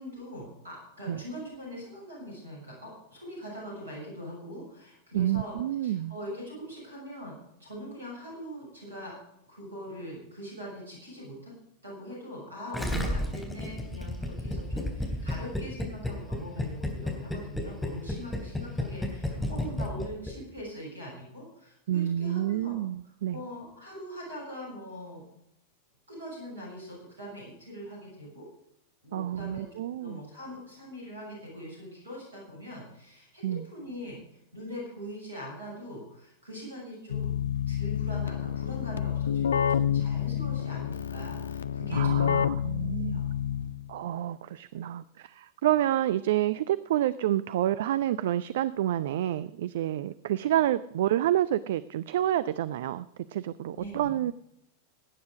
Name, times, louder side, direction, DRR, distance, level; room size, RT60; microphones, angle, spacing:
voice 1, 0.0-5.6 5.8-9.2 9.5-11.5 11.8-22.8 23.3-25.2 26.1-28.5 29.0-29.7 30.0-37.4 37.7-42.4 43.0-43.3 43.6-43.7 53.7-54.1, equal, 75° right, -3 dB, 6.6 m, -42 dB
voice 2, 5.1-6.1 12.9-13.1 21.9-23.4 29.1-30.2 33.4-33.7 41.9-43.2 43.9-54.3, right 12 dB, 55° right, 16 dB, 0.5 m, -29 dB
Gurgling, 12.7-20.6, left 1 dB, 5° left, 3.2 m, -31 dB
Keyboard (musical), 37.1-44.0, left 9 dB, 65° left, 0.5 m, -28 dB
18.0 x 9.5 x 4.9 m, 0.78 s
figure-of-eight pair, 90°, 0 cm